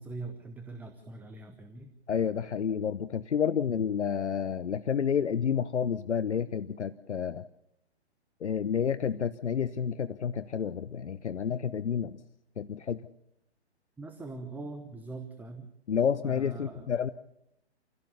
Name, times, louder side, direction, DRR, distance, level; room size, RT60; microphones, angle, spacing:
voice 1, 0.0-1.9 14.0-15.7 16.2-16.9, right 3 dB, 5° right, 7 dB, 1.0 m, -42 dB
voice 2, 2.1-7.5 8.4-12.2 12.6-13.1 15.9-17.1, left 7 dB, 80° left, 14 dB, 0.8 m, -30 dB
27.0 x 16.5 x 6.8 m, 0.82 s
figure-of-eight pair, 130°, 34 cm